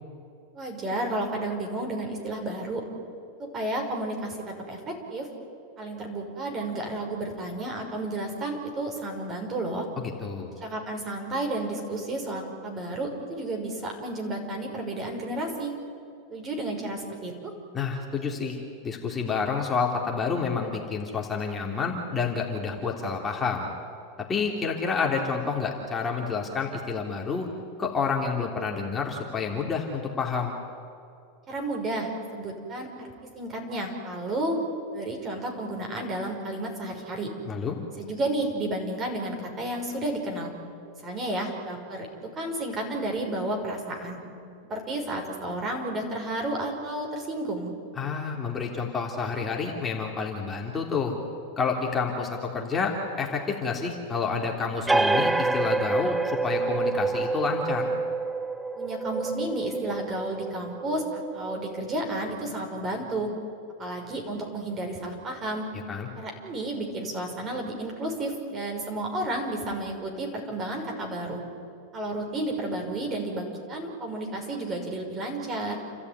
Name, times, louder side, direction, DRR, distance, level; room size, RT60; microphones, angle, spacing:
voice 1, 0.5-2.8 3.4-5.3 5.8-9.9 10.6-15.7 16.3-17.5 31.5-34.6 34.9-37.3 38.0-40.5 41.0-42.1 42.4-44.2 44.6-47.7 58.8-63.3 63.8-65.7 66.2-71.4 71.9-75.8, right 1 dB, 30° right, 2 dB, 5.8 m, -32 dB
voice 2, 10.0-10.5 17.7-23.7 24.3-27.5 27.8-30.6 37.4-37.8 48.0-51.2 51.6-57.9 65.9-66.1, left 5 dB, 20° left, -1 dB, 3.3 m, -29 dB
sound 1, 54.9-62.1, right 3 dB, 10° right, 0.7 m, -27 dB
29.5 x 14.0 x 9.8 m, 2.5 s
hypercardioid pair, 115°, 0 cm